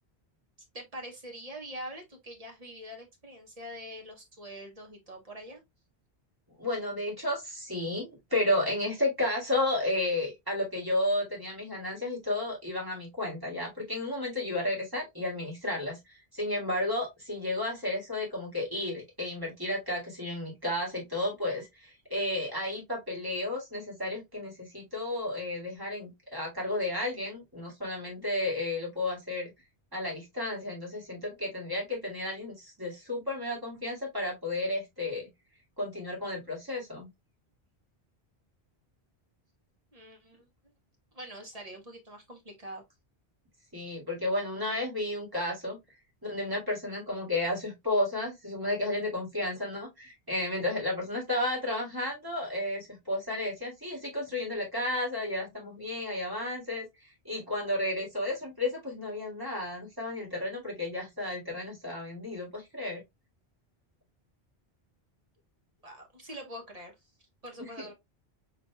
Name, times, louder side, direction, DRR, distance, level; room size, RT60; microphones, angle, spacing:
voice 1, 0.7-5.6 39.9-40.5 41.1-42.8 65.8-66.9 67.4-67.9, equal, 35° right, 1.2 m, -44 dB
voice 2, 6.6-29.5 29.9-35.2 35.8-37.1 43.7-45.8 46.2-63.0 67.6-67.9, left 1 dB, 20° right, 2.2 m, -32 dB
4.3 x 4.0 x 2.2 m
omnidirectional pair, 1.1 m